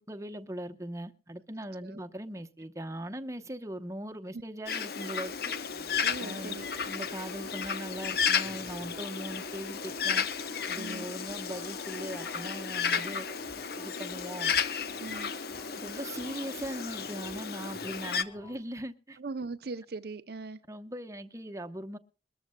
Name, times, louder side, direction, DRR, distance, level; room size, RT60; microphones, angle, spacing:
voice 1, 0.1-5.5 6.2-6.6 6.9-10.3 10.7-13.3 13.8-14.5 15.7-19.2 20.7-22.0, right 1 dB, 15° right, 0.9 m, -40 dB
Bird, 4.7-18.2, left 6 dB, 60° left, 0.9 m, -33 dB
sound 1, 5.3-18.6, left 2 dB, 25° left, 3.3 m, -55 dB
voice 2, 6.0-6.8 10.7-11.1 12.9-13.4 15.0-15.4 19.2-20.6, right 3 dB, 60° right, 0.6 m, -41 dB
22.0 x 14.0 x 2.3 m
head